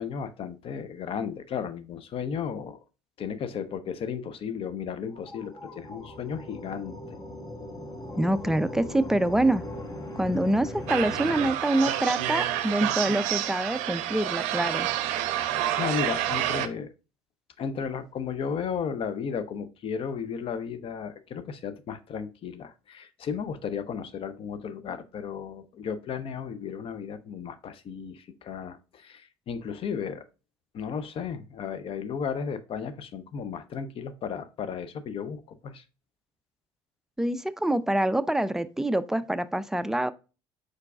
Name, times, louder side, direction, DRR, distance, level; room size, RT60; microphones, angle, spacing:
voice 1, 0.0-2.8 3.2-7.2 15.2-16.9 17.6-30.2 30.7-35.8, left 7 dB, 45° left, 0.7 m, -34 dB
sound 1, 4.9-11.5, left 1 dB, 30° left, 1.0 m, -39 dB
voice 2, 8.2-9.6 10.2-14.9 37.2-40.1, right 1 dB, 5° right, 0.4 m, -26 dB
sound 2, 10.9-16.7, right 12 dB, 65° right, 0.5 m, -29 dB
4.7 x 4.5 x 2.3 m
hypercardioid pair, 70°, 13 cm